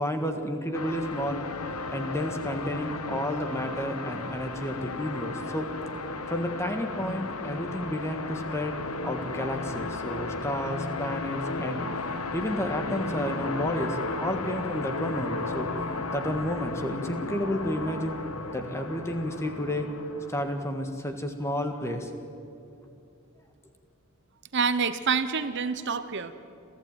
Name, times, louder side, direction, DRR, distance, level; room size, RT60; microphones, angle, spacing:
voice 1, 0.0-1.4 1.9-5.7 6.3-8.8 9.0-11.9 12.3-15.7 16.1-18.2 18.5-19.9 20.3-22.1, left 1 dB, 10° left, 5 dB, 1.7 m, -31 dB
sound 1, 0.7-20.7, left 3 dB, 90° left, 1.3 m, -34 dB
voice 2, 24.5-26.3, right 5 dB, 55° right, 11 dB, 0.8 m, -27 dB
27.0 x 15.0 x 9.2 m, 2.6 s
head